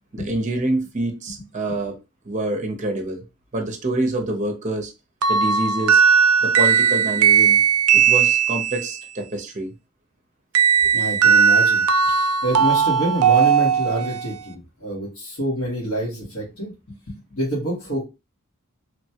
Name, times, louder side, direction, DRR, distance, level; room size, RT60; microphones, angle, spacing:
voice 1, 0.1-1.9 2.2-3.2 3.5-4.9 5.3-6.0 6.4-7.6 7.9-9.7, right 2 dB, 35° right, 4 dB, 0.6 m, -26 dB
sound 1, 5.2-9.0 10.5-14.3, right 7 dB, 80° right, 0.4 m, -17 dB
voice 2, 10.9-16.7 17.3-18.0, right 1 dB, 75° left, -5 dB, 1.4 m, -27 dB
3.0 x 2.2 x 2.8 m, 0.26 s
head